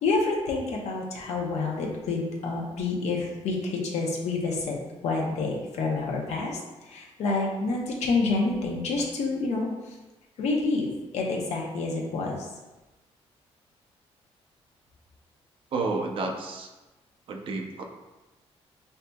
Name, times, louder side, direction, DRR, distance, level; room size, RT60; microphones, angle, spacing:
voice 1, 0.0-6.5 6.9-9.7 10.4-10.9 11.1-12.4, left 3 dB, 85° left, -1 dB, 0.9 m, -28 dB
voice 2, 15.7-16.7 17.3-17.8, right 3 dB, 50° right, 2 dB, 0.6 m, -30 dB
6.5 x 2.8 x 2.3 m, 1.1 s
cardioid pair, 180°, 11 cm